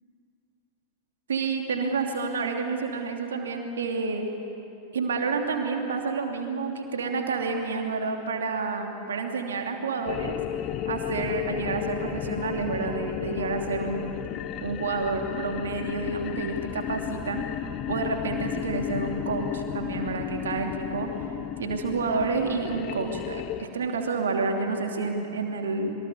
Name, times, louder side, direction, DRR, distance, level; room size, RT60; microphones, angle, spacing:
voice 1, 1.3-4.3 4.9-10.4 10.8-14.2 14.6-17.5 17.9-21.1 21.6-25.9, right 4 dB, 65° right, 3 dB, 2.8 m, -29 dB
sound 1, 10.1-23.7, left 12 dB, 35° left, 0.8 m, -33 dB
26.5 x 23.0 x 7.2 m, 3.0 s
figure-of-eight pair, 90°, 0 cm